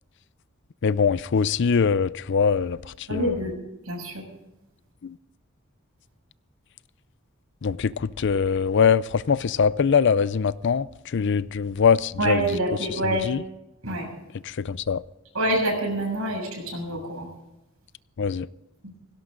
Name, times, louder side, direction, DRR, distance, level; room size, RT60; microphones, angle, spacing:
voice 1, 0.8-2.8 3.1-3.3 7.6-10.9 11.1-12.4 13.2-13.4 14.6-15.0 18.2-18.5, left 6 dB, 55° left, 0.4 m, -22 dB
voice 2, 3.1-3.5 3.8-4.2 12.2-13.3 13.8-14.1 15.3-17.3, right 1 dB, 90° right, 6.8 m, -26 dB
18.0 x 17.0 x 3.8 m
head